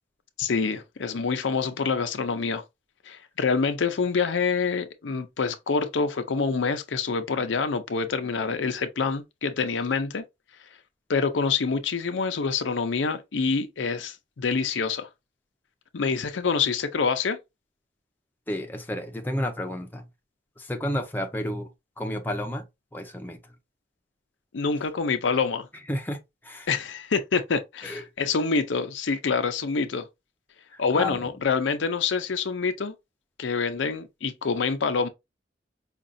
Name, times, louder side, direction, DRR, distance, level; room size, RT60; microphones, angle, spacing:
voice 1, 0.4-2.6 3.1-10.2 11.1-15.1 15.9-17.4 24.5-25.7 26.7-30.1 30.8-32.9 33.4-35.1, left 5 dB, 85° left, 0.6 m, -26 dB
voice 2, 18.5-20.1 20.6-21.7 22.0-22.6 22.9-23.4 25.9-26.2 26.4-26.7 27.8-28.0 30.7-31.3, left 1 dB, 10° left, 0.5 m, -31 dB
5.0 x 2.3 x 2.6 m
head